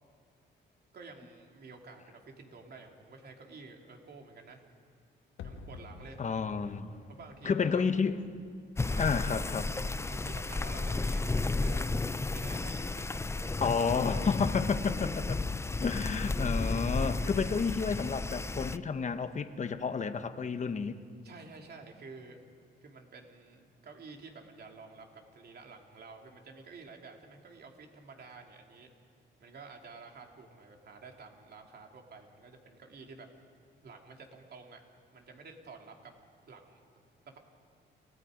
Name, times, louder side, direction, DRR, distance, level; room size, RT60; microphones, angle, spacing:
voice 1, 0.9-4.6 5.4-6.2 7.1-8.0 8.8-9.3 10.1-13.6 21.2-22.4 22.8-28.9 29.4-33.3 33.8-34.8 35.1-36.1 36.5-36.8 37.2-37.4, right 4 dB, 55° right, 2 dB, 3.0 m, -50 dB
sound 1, 5.4-10.3 10.6-10.7, left 4 dB, 80° left, 1.9 m, -52 dB
voice 2, 6.2-6.9 7.4-8.2 9.0-9.7 13.6-15.4 15.8-21.0, left 5 dB, 35° left, 10 dB, 1.1 m, -31 dB
sound 2, 8.8-18.8, left 3 dB, 15° left, 0.5 m, -33 dB
29.5 x 17.5 x 5.2 m, 2.2 s
cardioid pair, 90°, 20 cm